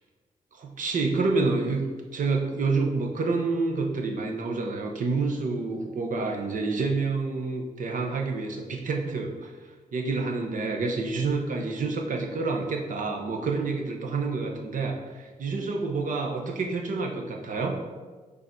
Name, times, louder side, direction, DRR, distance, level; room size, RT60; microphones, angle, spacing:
voice 1, 0.5-1.8 2.1-9.5 9.9-17.8, right 3 dB, 70° right, 2 dB, 0.9 m, -28 dB
5.5 x 4.1 x 4.4 m, 1.4 s
wide cardioid pair, 105°, 14 cm